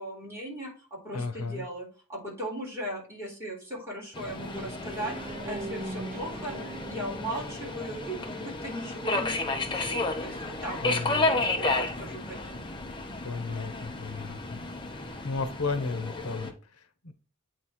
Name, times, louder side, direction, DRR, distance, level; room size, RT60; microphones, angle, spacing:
voice 1, 0.0-6.6 6.9-12.7, right 1 dB, 15° right, 3.6 m, -38 dB
voice 2, 1.1-1.7 10.8-11.5 13.2-14.6 15.0-17.1, left 4 dB, 90° left, 0.9 m, -34 dB
Subway metro underground, 4.1-16.5, left 2 dB, 20° left, 0.9 m, -32 dB
sound 1, 4.5-9.2, right 1 dB, 35° right, 0.8 m, -41 dB
8.8 x 3.1 x 4.3 m
head